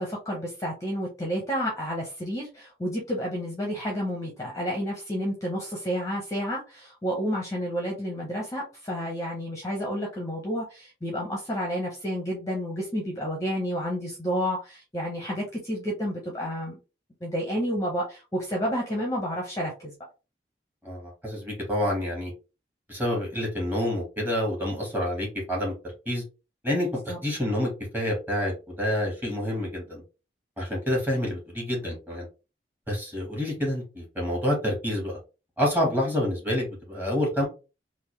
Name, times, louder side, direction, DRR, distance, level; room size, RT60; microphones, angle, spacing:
voice 1, 0.0-16.8 17.2-19.9 27.1-27.2, equal, 20° left, -1 dB, 0.9 m, -30 dB
voice 2, 20.8-22.3 22.9-25.7 26.0-26.2 26.6-26.9 27.2-30.0 30.6-32.3 32.9-35.2 35.6-37.4, left 1 dB, 10° right, -3 dB, 1.7 m, -28 dB
3.7 x 2.7 x 3.2 m, 0.30 s
head